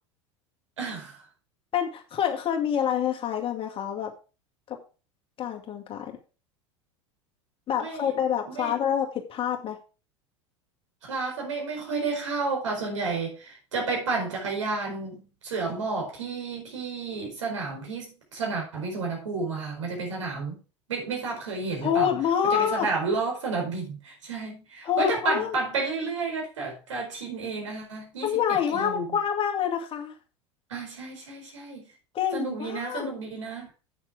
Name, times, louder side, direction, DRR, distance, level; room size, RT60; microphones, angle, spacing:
voice 1, 0.8-1.1 7.8-8.1 8.6-8.7 11.0-20.6 20.9-22.1 22.5-29.0 30.7-31.8 32.3-33.7, right 4 dB, 75° right, 4.6 m, -31 dB
voice 2, 1.7-4.1 4.7-4.8 5.4-6.2 7.7-9.8 21.8-22.9 24.8-25.6 28.2-30.1 32.1-33.1, left 9 dB, 35° left, 2.3 m, -27 dB
8.2 x 7.2 x 4.8 m
figure-of-eight pair, 80°, 16 cm